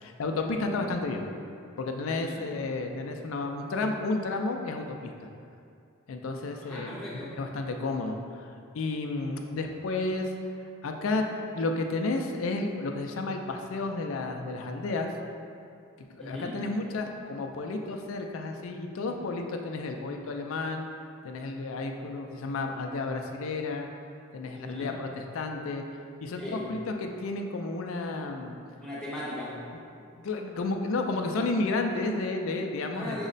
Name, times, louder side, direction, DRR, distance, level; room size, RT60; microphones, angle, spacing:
voice 1, 0.0-1.3 1.8-5.1 6.1-8.5 8.7-10.3 10.8-11.3 11.5-15.1 16.0-20.9 21.2-23.9 24.3-25.9 26.2-26.4 26.7-28.5 30.2-33.2, left 3 dB, 70° left, 4 dB, 0.4 m, -32 dB
voice 2, 2.1-2.5 6.6-7.4 16.2-16.7 24.5-24.9 26.4-26.8 28.8-29.7 32.9-33.3, left 1 dB, 5° left, -8 dB, 0.8 m, -38 dB
6.1 x 2.1 x 3.9 m, 2.4 s
head